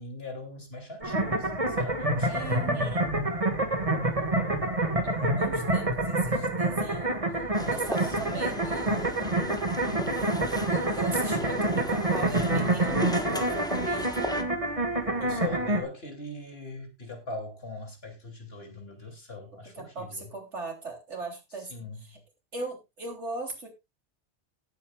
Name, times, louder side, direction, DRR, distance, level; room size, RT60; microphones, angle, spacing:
voice 1, 0.0-2.3 8.0-8.5 15.2-20.3 21.7-22.0, left 2 dB, 60° left, 3.4 m, -41 dB
sound 1, 1.0-15.8, right 2 dB, 30° right, 2.0 m, -27 dB
voice 2, 2.3-3.1 5.0-9.6 10.7-14.3 19.5-22.2 22.5-23.7, right 3 dB, 80° right, 3.8 m, -39 dB
sound 2, 7.5-14.4, equal, 5° left, 1.3 m, -37 dB
18.0 x 8.8 x 2.4 m
omnidirectional pair, 1.2 m